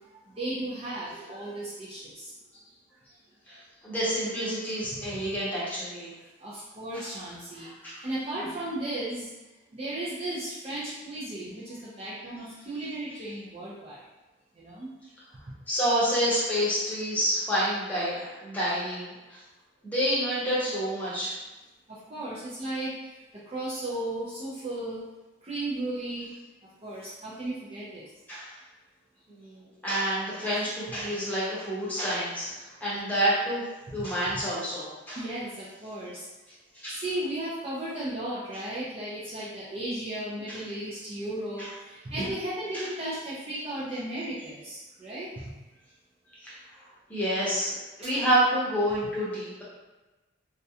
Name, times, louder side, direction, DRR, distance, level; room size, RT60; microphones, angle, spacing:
voice 1, 0.3-2.3 3.5-3.6 6.4-9.3 9.7-14.0 14.6-14.9 21.9-22.9 23.5-25.0 25.4-26.3 26.8-28.0 35.2-36.3 36.9-41.7 42.0-45.3, right 1 dB, 30° right, -8 dB, 0.4 m, -35 dB
voice 2, 3.5-6.1 6.9-7.1 7.8-8.1 15.7-19.4 19.8-21.4 28.3-28.6 29.3-33.6 33.9-35.2 36.7-37.0 41.6-41.7 42.7-42.8 46.4-46.6 47.1-49.6, equal, 10° left, -9 dB, 0.7 m, -28 dB
2.3 x 2.1 x 2.7 m, 1.1 s
head